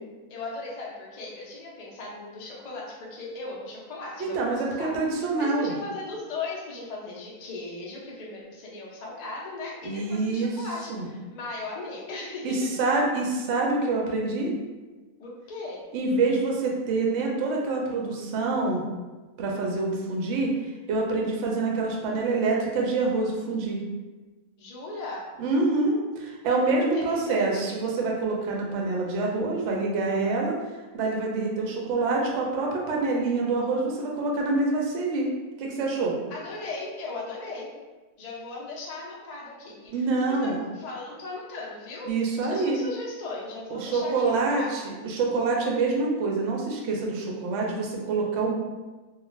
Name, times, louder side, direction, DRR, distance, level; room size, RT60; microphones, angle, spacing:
voice 1, 0.3-12.6 15.2-15.8 24.6-25.3 26.5-27.8 36.3-37.7 38.2-42.1 42.4-44.7, left 3 dB, 85° left, -4 dB, 0.3 m, -38 dB
voice 2, 4.2-5.7 9.8-10.6 10.9-11.1 12.4-14.5 15.9-18.8 19.4-20.5 20.9-23.8 25.4-30.5 30.9-35.3 35.6-36.2 39.9-40.6 42.1-42.8 43.7-48.5, right 3 dB, 65° right, -1 dB, 0.7 m, -26 dB
2.4 x 2.3 x 3.0 m, 1.2 s
omnidirectional pair, 1.6 m